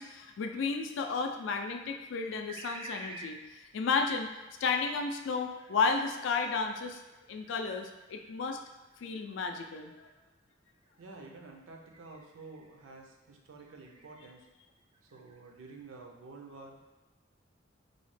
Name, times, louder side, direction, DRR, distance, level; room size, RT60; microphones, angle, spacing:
voice 1, 0.0-4.3 4.6-7.0 7.3-8.6 9.0-10.1, left 4 dB, 65° left, 4 dB, 0.3 m, -33 dB
sound 1, 0.9-1.5 2.5-3.4 4.4-6.2 6.9-10.2 10.7-11.0 11.9-12.8 13.6-14.3 14.8-15.7, right 2 dB, 25° right, 0.3 m, -51 dB
voice 2, 11.0-14.4 15.1-16.8, right 3 dB, 80° right, 1 dB, 0.5 m, -50 dB
4.0 x 2.1 x 3.2 m, 1.1 s
head